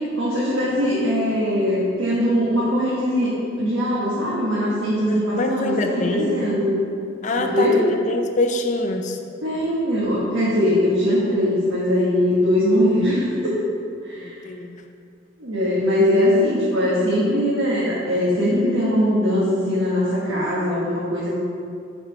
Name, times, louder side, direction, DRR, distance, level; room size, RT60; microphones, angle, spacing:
voice 1, 0.2-6.7 7.4-7.8 9.4-13.6 14.0-14.4 15.4-21.3, equal, 90° right, -8 dB, 1.4 m, -21 dB
voice 2, 5.1-6.3 7.2-9.2 11.1-11.3 14.2-14.8, left 2 dB, 35° left, 5 dB, 0.4 m, -25 dB
7.2 x 4.3 x 5.2 m, 2.4 s
head